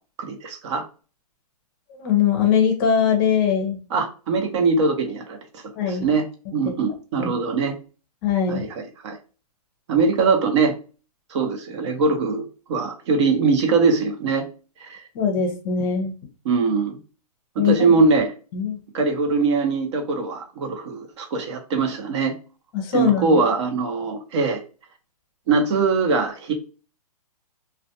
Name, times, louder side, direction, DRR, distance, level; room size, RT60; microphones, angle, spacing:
voice 1, 0.2-0.8 3.9-6.2 6.5-7.7 8.5-9.2 9.9-10.7 11.3-12.4 12.7-14.4 14.8-15.0 16.4-17.0 17.6-18.3 18.9-22.3 22.9-24.6 25.5-26.5, right 4 dB, 45° right, 5 dB, 0.7 m, -22 dB
voice 2, 2.0-3.8 5.8-6.0 7.2-7.3 8.2-8.7 15.1-16.1 17.6-17.9 18.5-18.8 22.7-23.4, left 7 dB, 35° left, 5 dB, 0.6 m, -21 dB
2.4 x 2.1 x 2.7 m, 0.35 s
hypercardioid pair, 145°, 20 cm